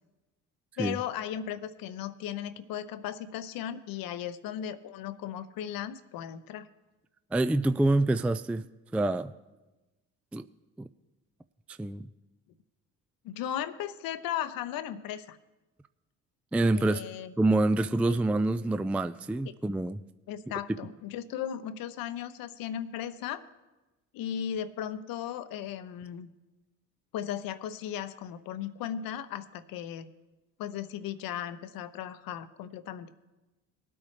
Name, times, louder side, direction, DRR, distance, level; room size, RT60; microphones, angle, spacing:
voice 1, 0.8-6.7 13.2-15.4 16.7-17.3 18.1-18.2 20.3-23.4 24.1-26.3 27.1-30.1 30.6-33.2, left 10 dB, 70° left, 13 dB, 0.9 m, -36 dB
voice 2, 7.3-8.6 8.9-9.3 10.3-10.5 10.8-10.9 11.7-12.1 16.5-17.0 17.4-20.0, right 2 dB, 5° right, 12 dB, 0.3 m, -26 dB
19.5 x 8.7 x 3.3 m, 1.1 s
supercardioid pair, 60°, 36 cm